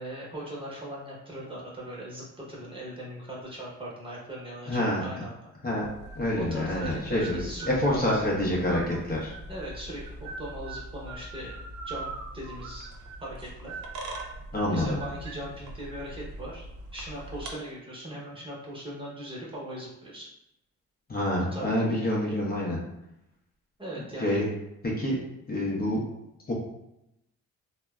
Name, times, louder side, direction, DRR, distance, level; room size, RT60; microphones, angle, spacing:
voice 1, 0.0-5.4 6.3-8.3 9.5-11.5 11.8-12.9 13.2-13.7 14.7-16.7 16.9-20.3 21.5-22.4 23.8-24.4, right 1 dB, 20° right, -5 dB, 0.9 m, -39 dB
voice 2, 4.7-5.0 5.6-5.9 6.2-7.4 7.7-9.3 14.5-15.0 21.1-22.8 24.2-24.5 24.8-25.2 25.5-26.0 26.5-26.6, left 1 dB, 30° left, -4 dB, 0.7 m, -27 dB
sound 1, 5.8-17.5, right 2 dB, 70° right, 0.6 m, -41 dB
3.2 x 2.1 x 2.3 m, 0.86 s
cardioid pair, 90°, 30 cm